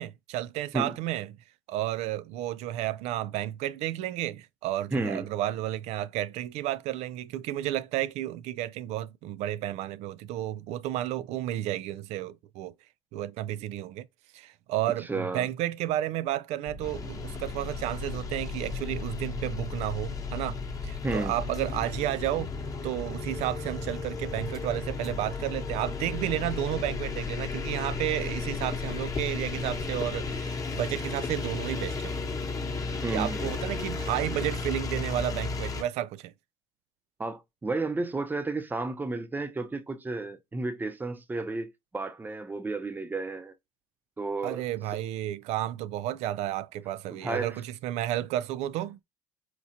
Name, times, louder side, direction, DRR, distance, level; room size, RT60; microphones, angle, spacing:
voice 1, 0.0-1.3 1.7-12.7 13.1-14.1 14.3-22.5 22.8-32.1 33.1-36.3 44.4-49.0, right 13 dB, 75° right, 0.4 m, -32 dB
voice 2, 4.9-5.3 15.0-15.5 21.0-21.4 33.0-33.5 37.2-43.5 44.2-44.6 47.1-47.6, right 3 dB, 15° right, 0.7 m, -32 dB
sound 1, 16.7-30.4, left 5 dB, 60° left, 1.0 m, -39 dB
sound 2, 16.8-35.8, left 3 dB, 30° left, 0.9 m, -35 dB
4.4 x 2.4 x 2.7 m
supercardioid pair, 80°, 11 cm